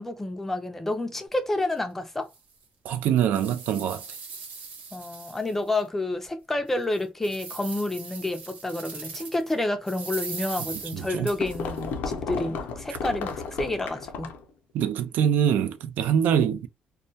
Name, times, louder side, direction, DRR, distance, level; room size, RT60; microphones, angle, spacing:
voice 1, 0.0-2.3 4.9-14.3, left 2 dB, 10° left, 0.4 m, -29 dB
sound 1, 1.7-1.8 2.3-2.4 3.0-5.8 6.2-6.3 6.8-9.5 9.9-11.8, right 5 dB, 60° right, 0.7 m, -40 dB
voice 2, 2.8-4.0 10.9-11.3 14.7-16.7, right 9 dB, 80° right, 0.3 m, -24 dB
sound 2, 10.7-14.5, left 5 dB, 85° left, 0.5 m, -33 dB
2.2 x 2.2 x 2.6 m
cardioid pair, 155°, 3 cm